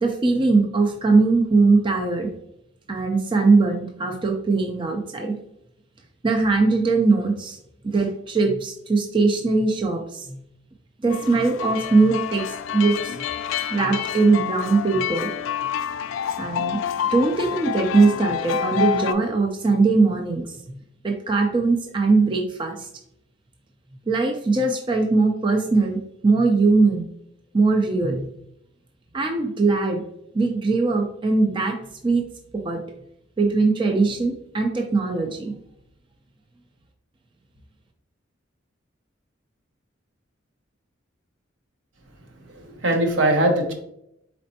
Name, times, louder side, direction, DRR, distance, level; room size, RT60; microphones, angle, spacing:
voice 1, 0.0-2.3 2.9-5.4 6.2-7.6 7.8-10.4 11.0-12.4 12.7-13.2 13.7-15.3 16.4-20.5 21.0-22.9 24.1-27.1 27.5-28.3 29.1-30.0 30.3-31.8 32.0-32.3 32.5-32.8 33.4-35.5, right 3 dB, 25° right, 2 dB, 0.4 m, -20 dB
sound 1, 11.1-19.1, left 9 dB, 80° left, 0.3 m, -28 dB
voice 2, 42.4-43.7, right 1 dB, 75° right, 2 dB, 1.0 m, -21 dB
4.2 x 4.1 x 2.7 m, 0.76 s
head